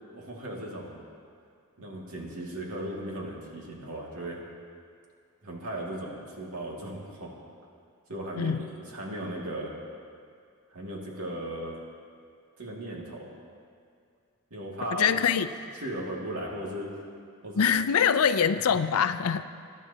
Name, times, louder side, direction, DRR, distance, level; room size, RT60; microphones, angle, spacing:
voice 1, 0.1-1.0 1.8-4.4 5.4-7.3 8.1-9.7 10.7-11.8 12.6-13.3 14.5-15.2 15.7-16.9 17.4-17.7, right 1 dB, 80° right, -2 dB, 2.2 m, -37 dB
voice 2, 14.9-15.5 17.6-19.4, left 7 dB, 80° left, 12 dB, 0.5 m, -24 dB
22.5 x 11.0 x 2.8 m, 2.3 s
head